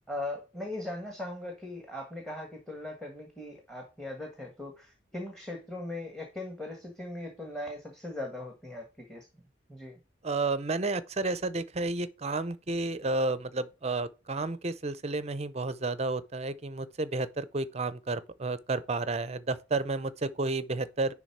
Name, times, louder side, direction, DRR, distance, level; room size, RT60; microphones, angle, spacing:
voice 1, 0.1-9.4 9.7-10.0, left 1 dB, 5° left, 1.5 m, -39 dB
voice 2, 10.2-21.1, right 3 dB, 35° right, 0.6 m, -31 dB
10.5 x 3.6 x 4.6 m
head